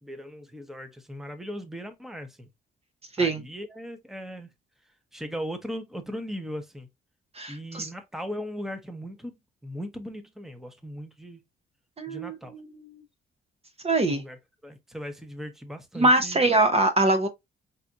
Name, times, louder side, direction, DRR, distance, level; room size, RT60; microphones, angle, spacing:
voice 1, 0.0-2.5 3.2-4.5 5.1-6.9 7.5-11.4 12.1-12.5 14.1-14.4 14.6-16.4, equal, ahead, 1.0 m, -38 dB
voice 2, 7.3-7.9 12.0-12.9 13.8-14.2 16.0-17.3, right 2 dB, 30° right, 0.8 m, -23 dB
5.7 x 2.6 x 2.5 m
cardioid pair, 90°, 20 cm